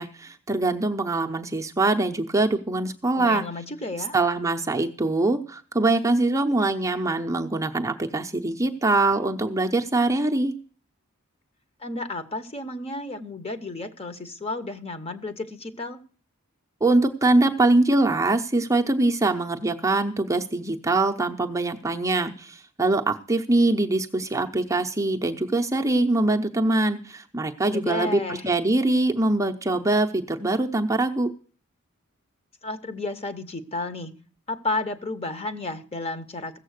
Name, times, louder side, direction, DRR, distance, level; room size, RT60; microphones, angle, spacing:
voice 1, 0.0-3.4 4.1-10.5 16.8-31.3, right 2 dB, 15° right, 2 dB, 0.7 m, -23 dB
voice 2, 3.1-4.1 11.8-16.0 27.7-28.5 32.6-34.1 34.5-36.6, left 2 dB, 30° left, 10 dB, 0.9 m, -32 dB
15.5 x 7.3 x 6.5 m, 0.42 s
head